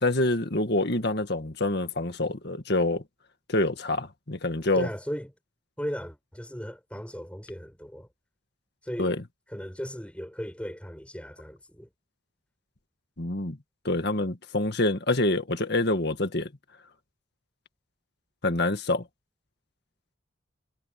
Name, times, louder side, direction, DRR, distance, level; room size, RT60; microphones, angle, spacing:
voice 1, 0.0-3.0 3.5-4.9 9.0-9.2 13.2-13.6 13.9-16.5 18.4-19.0, left 2 dB, 55° left, 1.9 m, -26 dB
voice 2, 4.8-5.3 5.8-8.1 8.8-9.2 9.5-11.9, equal, 5° left, 7.0 m, -36 dB
head